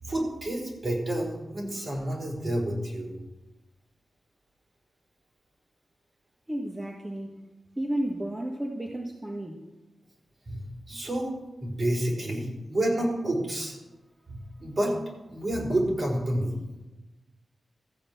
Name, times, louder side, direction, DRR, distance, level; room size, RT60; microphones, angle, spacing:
voice 1, 0.0-3.1 10.5-10.6 10.9-11.3 11.6-13.8 14.3-15.0 15.3-16.6, right 1 dB, 55° right, -2 dB, 4.8 m, -29 dB
voice 2, 6.5-7.5 7.8-9.7, right 1 dB, 25° right, 0 dB, 1.8 m, -32 dB
14.5 x 5.2 x 8.7 m, 1.1 s
cardioid pair, 45°, 0 cm